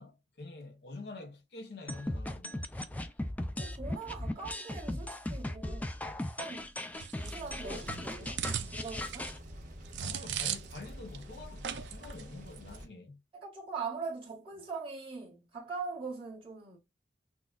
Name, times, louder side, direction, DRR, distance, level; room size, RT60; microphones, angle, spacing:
voice 1, 0.0-2.7 7.6-8.7 10.0-13.2, left 3 dB, 65° left, 0.7 m, -47 dB
sound 1, 1.9-9.4, left 1 dB, 10° left, 0.4 m, -38 dB
voice 2, 3.6-6.0 6.4-6.7 7.1-8.4 8.7-9.4 13.3-16.8, right 4 dB, 30° right, 1.7 m, -41 dB
sound 2, 6.9-10.9 11.1-11.2 11.6-12.2 12.5-12.8, right 9 dB, 80° right, 0.5 m, -39 dB
sound 3, 7.4-12.9, equal, 45° right, 1.4 m, -48 dB
6.0 x 2.3 x 2.3 m
head